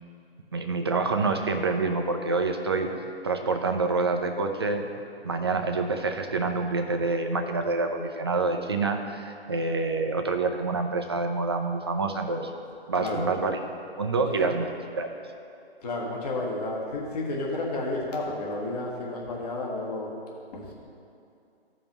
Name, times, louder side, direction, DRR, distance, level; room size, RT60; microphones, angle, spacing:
voice 1, 0.5-3.0 3.2-4.9 5.2-12.5 12.9-13.6 14.0-14.7 15.0-15.2, right 3 dB, 25° right, 4 dB, 0.4 m, -27 dB
voice 2, 13.0-13.3 14.1-14.6 15.8-20.1 20.5-20.7, left 2 dB, 40° left, -2 dB, 1.5 m, -32 dB
16.0 x 5.4 x 3.0 m, 2.6 s
figure-of-eight pair, 145°, 32 cm